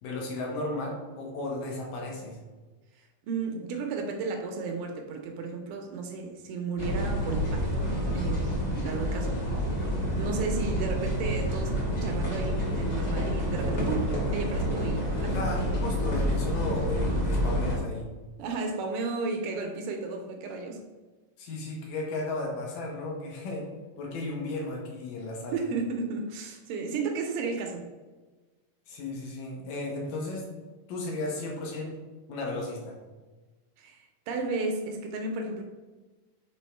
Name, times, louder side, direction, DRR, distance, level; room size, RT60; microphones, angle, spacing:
voice 1, 0.0-2.4 15.3-18.1 21.4-23.7 24.0-25.6 28.9-30.5 30.9-32.0 32.3-33.0, left 2 dB, 75° left, -1 dB, 2.7 m, -34 dB
voice 2, 3.0-9.5 10.1-15.4 18.4-20.8 25.5-27.9 33.8-35.6, right 4 dB, 80° right, 3 dB, 2.1 m, -33 dB
sound 1, 6.8-17.8, equal, 35° left, 1.3 m, -28 dB
6.2 x 3.5 x 4.3 m, 1.2 s
omnidirectional pair, 4.0 m